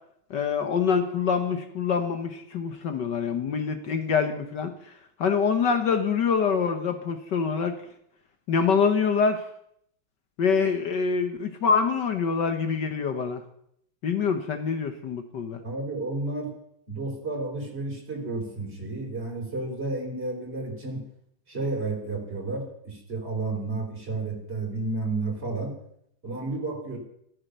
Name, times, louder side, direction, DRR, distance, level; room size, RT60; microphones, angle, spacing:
voice 1, 0.3-4.7 5.2-7.8 8.5-9.4 10.4-13.4 14.0-15.6, left 6 dB, 60° left, 8 dB, 1.6 m, -25 dB
voice 2, 15.6-16.5 16.9-21.0 21.5-25.7 26.2-27.0, right 3 dB, 30° right, 0 dB, 4.8 m, -31 dB
14.5 x 13.5 x 6.7 m, 0.71 s
omnidirectional pair, 2.3 m